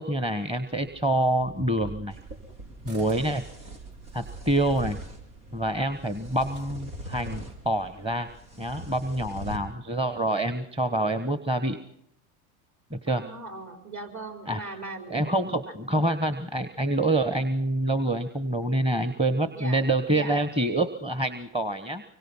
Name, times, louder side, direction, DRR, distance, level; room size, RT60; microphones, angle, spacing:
voice 1, 0.0-2.2 2.8-3.4 4.1-5.0 5.5-8.3 8.6-11.8 12.9-13.2 14.5-14.6 15.1-22.0, right 1 dB, 15° right, 10 dB, 1.3 m, -26 dB
sound 1, 0.7-6.7, right 3 dB, 65° right, 5.6 m, -49 dB
sound 2, 2.1-9.6, right 1 dB, 90° right, 3.4 m, -42 dB
voice 2, 13.1-15.7 19.5-19.8 20.1-20.4, right 2 dB, 40° right, 5 dB, 5.1 m, -39 dB
25.0 x 24.0 x 5.7 m, 0.71 s
hypercardioid pair, 85°, 42 cm